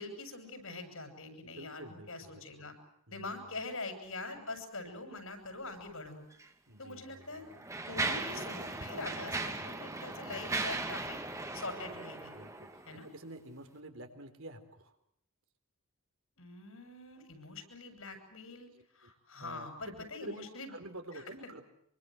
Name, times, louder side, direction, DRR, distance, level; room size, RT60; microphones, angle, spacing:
voice 1, 0.0-2.7 3.1-6.2 6.8-7.4 7.8-11.2 11.5-12.3 12.9-13.1 16.4-18.7 18.9-20.7, left 3 dB, 65° left, 7 dB, 7.3 m, -44 dB
voice 2, 1.5-2.7 3.1-3.6 6.7-7.8 9.2-9.4 12.3-14.9 19.4-21.7, right 1 dB, 65° right, 7 dB, 4.1 m, -49 dB
Mechanisms, 6.3-6.5 7.2-13.0, right 3 dB, 15° right, 2.4 m, -38 dB
26.5 x 24.5 x 7.9 m, 0.71 s
head